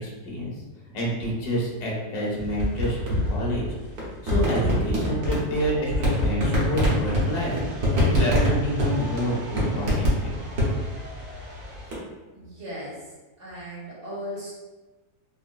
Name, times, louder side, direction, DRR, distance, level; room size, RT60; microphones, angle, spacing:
voice 1, 0.0-0.5 0.9-3.6 4.2-7.5 7.9-10.4, equal, 75° left, -4 dB, 1.4 m, -28 dB
sound 1, 2.4-12.0, equal, 70° right, 1.4 m, -25 dB
voice 2, 12.3-12.9 13.4-14.5, equal, 50° right, -6 dB, 1.1 m, -36 dB
4.0 x 2.1 x 2.2 m, 1.2 s
omnidirectional pair, 1.7 m